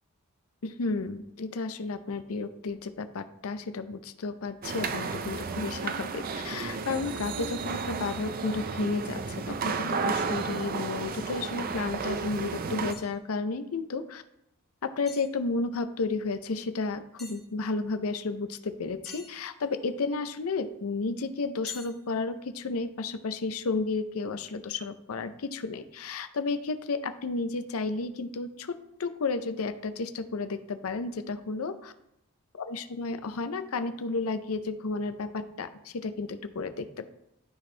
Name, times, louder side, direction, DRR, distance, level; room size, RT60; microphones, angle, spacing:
voice 1, 0.6-14.2 14.8-31.9 32.5-37.1, left 3 dB, 70° left, 10 dB, 0.5 m, -32 dB
sound 1, 4.6-12.9, right 5 dB, 40° right, 0.5 m, -33 dB
sound 2, 11.3-11.4 12.2-12.3 12.9-13.2 15.1-15.3 17.2-17.4 19.1-19.9 21.7-22.1, left 3 dB, ahead, 1.0 m, -45 dB
12.5 x 4.3 x 3.2 m, 0.79 s
head